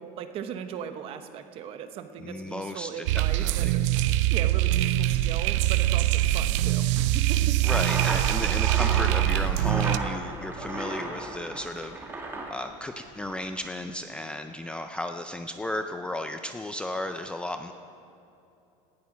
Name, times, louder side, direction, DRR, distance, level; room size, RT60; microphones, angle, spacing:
voice 1, 0.0-7.6, right 8 dB, 35° right, 9 dB, 1.0 m, -38 dB
voice 2, 2.2-3.7 7.6-12.0 12.5-17.7, left 1 dB, 5° left, 7 dB, 0.4 m, -34 dB
sound 1, 3.1-10.0, right 14 dB, 75° right, 0.6 m, -23 dB
sound 2, 7.6-13.5, right 2 dB, 15° right, 2.0 m, -35 dB
18.0 x 12.5 x 6.2 m, 2.8 s
cardioid pair, 165°, 16 cm